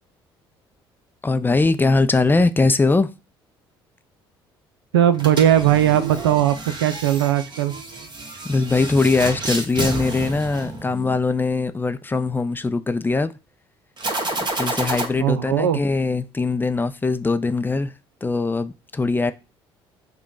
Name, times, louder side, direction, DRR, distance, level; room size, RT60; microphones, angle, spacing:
voice 1, 1.2-3.1 8.4-13.3 14.4-17.9 18.2-19.3, left 3 dB, 15° left, 0.4 m, -21 dB
voice 2, 4.9-7.7 15.2-15.8, right 10 dB, 80° right, 0.4 m, -18 dB
sound 1, 5.1-11.3 14.0-15.1, right 2 dB, 35° right, 1.3 m, -30 dB
5.0 x 2.2 x 4.6 m
figure-of-eight pair, 50°, 13 cm